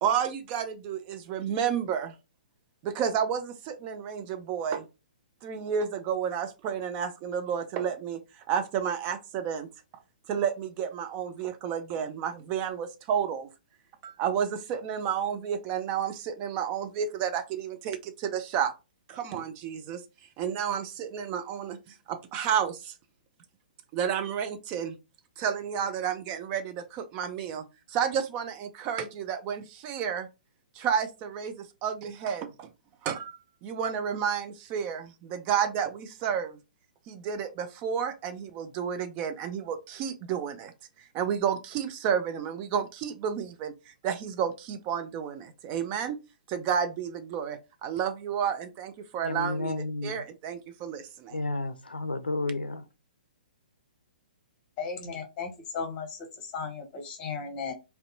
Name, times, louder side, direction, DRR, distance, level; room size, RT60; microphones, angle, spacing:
voice 1, 0.0-2.1 2.8-4.9 5.4-8.2 8.5-9.7 10.3-13.5 14.0-18.7 19.1-20.0 20.4-22.9 23.9-25.0 25.4-30.3 30.8-32.7 33.0-33.3 33.6-36.6 37.1-40.7 41.1-46.2 46.5-49.7 50.0-51.4, right 8 dB, 30° right, 0.4 m, -31 dB
voice 2, 49.2-50.1 51.3-52.8, left 2 dB, 85° left, 0.4 m, -31 dB
voice 3, 54.8-56.2 56.5-57.7, left 5 dB, 30° left, 0.9 m, -35 dB
2.5 x 2.2 x 2.6 m
figure-of-eight pair, 120°, 5 cm